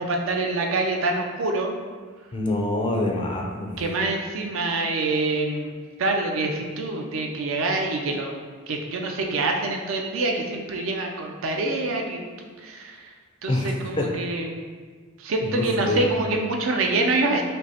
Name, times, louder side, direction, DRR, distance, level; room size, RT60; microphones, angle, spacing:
voice 1, 0.0-1.7 3.8-5.7 6.0-8.3 8.7-13.1 13.4-14.6 15.2-17.4, right 2 dB, 75° right, 2 dB, 0.4 m, -26 dB
voice 2, 2.3-3.7 13.5-13.7 14.0-14.1 15.4-16.0, left 1 dB, 25° left, 1 dB, 0.3 m, -25 dB
5.2 x 2.0 x 2.8 m, 1.5 s
head